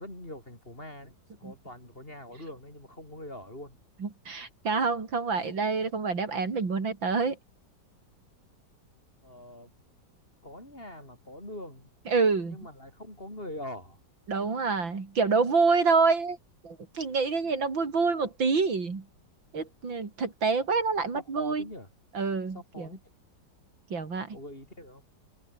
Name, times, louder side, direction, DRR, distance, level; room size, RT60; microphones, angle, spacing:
voice 1, 0.0-3.8 9.2-9.7 10.4-11.9 12.5-14.0 17.4-17.7 21.1-21.9 22.5-23.0 24.3-25.0, left 1 dB, 30° left, 7.8 m, -43 dB
voice 2, 4.0-7.4 12.1-12.6 14.3-16.4 16.6-19.0 19.5-21.6 22.1-22.9 23.9-24.4, right 4 dB, 85° right, 4.2 m, -27 dB
omnidirectional pair, 2.0 m